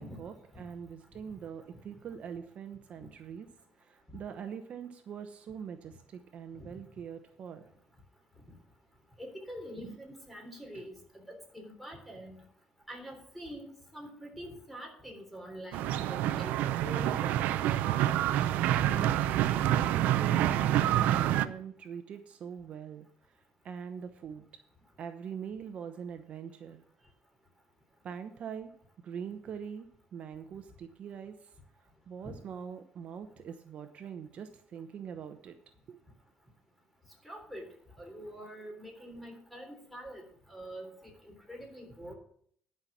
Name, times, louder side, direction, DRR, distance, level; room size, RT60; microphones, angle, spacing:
voice 1, 0.0-3.5 3.8-7.7 9.8-10.0 18.8-19.6 19.9-23.4 23.6-24.6 25.0-26.8 28.0-28.7 29.0-31.5 32.1-35.6 35.9-36.0, right 7 dB, 50° right, 7 dB, 0.9 m, -43 dB
voice 2, 9.2-12.4 12.9-17.3 18.7-18.8 32.2-32.3 37.2-37.7 38.0-40.2 40.5-40.9 41.5-42.1, equal, ahead, 2 dB, 3.4 m, -45 dB
sound 1, 15.7-21.5, right 12 dB, 85° right, 0.5 m, -27 dB
11.5 x 5.7 x 7.2 m, 0.63 s
cardioid pair, 125°, 3 cm